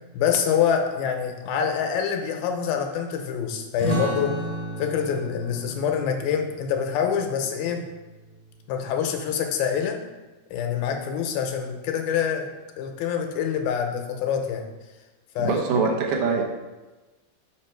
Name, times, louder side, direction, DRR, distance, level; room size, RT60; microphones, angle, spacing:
voice 1, 0.1-4.3 4.8-7.8 8.7-10.0 10.5-12.5 12.8-14.7 15.4-15.6, left 7 dB, 80° left, 4 dB, 2.4 m, -26 dB
sound 1, 3.8-9.0, right 2 dB, 50° right, 1.0 m, -34 dB
voice 2, 15.4-16.4, right 4 dB, 80° right, 0 dB, 1.7 m, -23 dB
5.8 x 5.6 x 4.5 m, 1.1 s
omnidirectional pair, 4.5 m